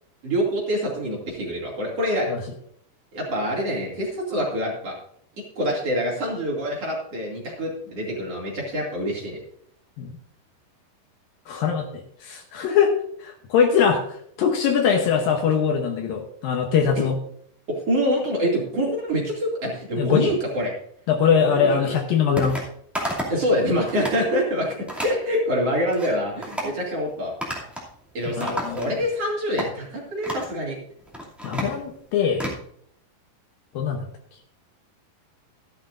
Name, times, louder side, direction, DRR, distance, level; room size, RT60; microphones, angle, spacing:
voice 1, 0.2-2.3 3.1-5.0 5.5-9.4 17.0-17.1 17.7-20.7 21.3-21.9 23.3-27.3 28.1-30.8, equal, 40° right, -3 dB, 3.2 m, -25 dB
voice 2, 11.5-12.9 13.2-17.1 19.9-20.3 21.1-22.6 28.4-28.9 31.4-32.5 33.7-34.1, left 7 dB, 70° left, 3 dB, 2.5 m, -22 dB
sound 1, 22.4-22.7 22.9-23.4 23.8-24.2 24.9-25.2 25.7-26.1 26.4-26.7 27.4-27.9 28.2-29.1 29.6-29.7 30.2-30.5 31.0-32.6, equal, ahead, 1.4 m, -31 dB
14.0 x 11.5 x 2.6 m, 0.65 s
omnidirectional pair, 4.7 m